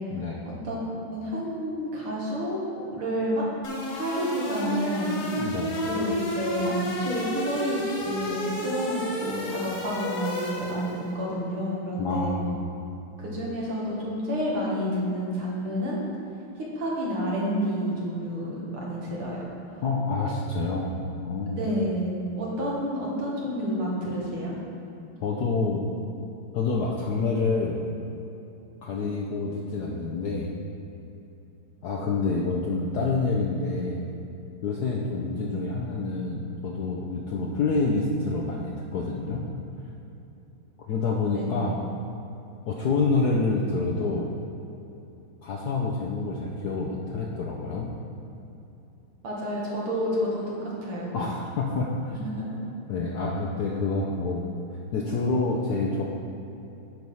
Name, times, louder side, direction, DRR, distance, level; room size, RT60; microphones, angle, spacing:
voice 1, 0.1-0.4 5.3-5.7 12.0-12.6 19.8-21.0 21.2-21.6 25.2-25.8 26.5-27.8 28.8-30.5 31.8-34.1 34.6-39.5 40.8-41.8 42.7-44.3 45.4-47.9 51.1-52.1 52.9-54.5 54.9-56.0, left 3 dB, 70° left, -2 dB, 0.9 m, -27 dB
voice 2, 1.0-2.6 2.9-3.5 3.9-5.4 5.8-12.4 13.2-16.0 16.6-19.4 19.7-19.8 21.5-24.5 41.3-41.7 49.2-51.1 52.2-52.5, equal, 75° right, -5 dB, 2.5 m, -29 dB
sound 1, 3.6-11.1, left 1 dB, 50° left, 1.3 m, -31 dB
9.4 x 4.7 x 5.5 m, 2.8 s
omnidirectional pair, 2.4 m